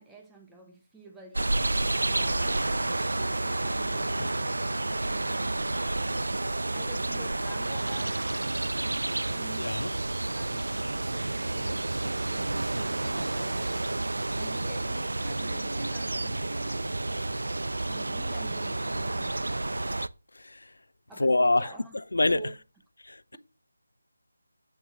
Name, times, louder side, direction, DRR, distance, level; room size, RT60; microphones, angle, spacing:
voice 1, 0.0-5.5 6.7-8.3 9.3-9.8 14.3-17.4 17.8-19.5 21.1-22.6, right 2 dB, 5° right, 0.7 m, -49 dB
sound 1, 1.3-20.1, right 2 dB, 85° right, 0.7 m, -30 dB
voice 2, 9.6-9.9 20.3-20.7 21.2-21.7 22.1-22.5 23.0-23.4, left 2 dB, 70° left, 0.6 m, -26 dB
8.4 x 6.3 x 7.5 m
figure-of-eight pair, 180°, 0 cm